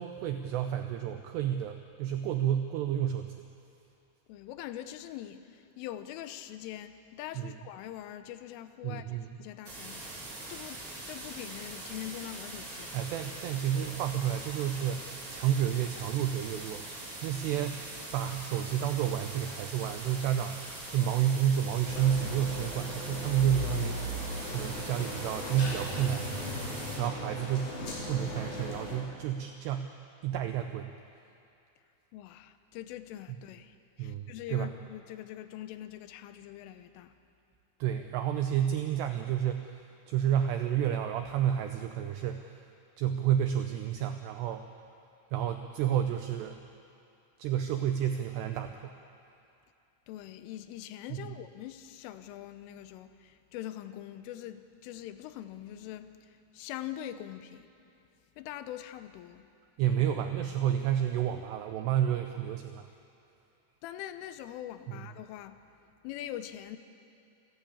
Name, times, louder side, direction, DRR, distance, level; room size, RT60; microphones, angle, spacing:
voice 1, 0.0-3.5 7.4-7.6 8.8-9.3 12.9-16.9 17.2-17.8 18.1-26.4 27.0-27.8 28.1-29.9 30.2-30.9 34.0-34.7 37.8-42.6 43.0-44.7 45.3-46.6 47.4-48.9 51.1-51.4 59.8-62.9 64.9-65.0, right 10 dB, 85° right, 6 dB, 2.4 m, -30 dB
voice 2, 4.3-9.0 9.4-13.1 27.0-27.1 32.1-37.1 50.1-57.7 58.4-59.5 59.9-60.0 63.8-65.6 66.0-66.8, left 12 dB, 80° left, 10 dB, 3.3 m, -43 dB
sound 1, 9.6-27.0, right 2 dB, 30° right, 4.7 m, -43 dB
sound 2, 21.8-29.0, left 1 dB, 40° left, 4.4 m, -38 dB
28.5 x 12.0 x 8.6 m, 2.6 s
omnidirectional pair, 5.8 m